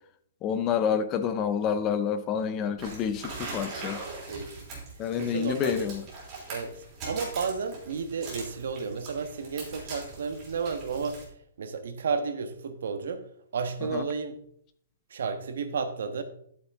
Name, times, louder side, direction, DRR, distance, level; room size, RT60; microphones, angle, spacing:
voice 1, 0.4-4.0 5.0-6.0 13.9-14.0, left 7 dB, 15° left, 0.5 m, -28 dB
sound 1, 2.8-11.2, right 3 dB, 20° right, 3.3 m, -41 dB
voice 2, 4.0-4.7 5.2-5.9 6.5-6.7 7.0-11.3 11.6-13.3 13.5-14.4 15.1-16.2, right 5 dB, 65° right, 1.4 m, -32 dB
12.0 x 7.2 x 3.7 m
hypercardioid pair, 175°, 0 cm